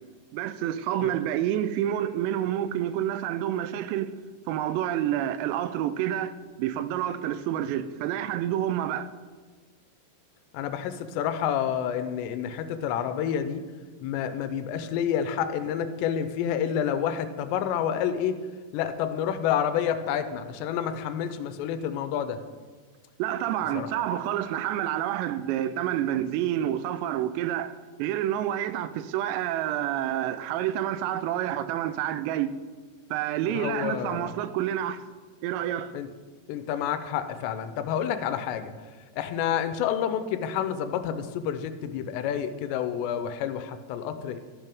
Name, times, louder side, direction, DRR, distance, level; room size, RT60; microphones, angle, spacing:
voice 1, 0.3-4.1 4.5-9.1 23.2-32.6 33.1-35.1 35.4-35.9, right 11 dB, 90° right, 2.8 m, -28 dB
voice 2, 10.5-13.6 14.0-18.4 18.7-22.4 23.7-23.9 33.5-34.3 35.9-36.1 36.5-38.7 39.2-44.4, left 9 dB, 90° left, 2.8 m, -29 dB
13.5 x 11.0 x 3.5 m
omnidirectional pair, 5.0 m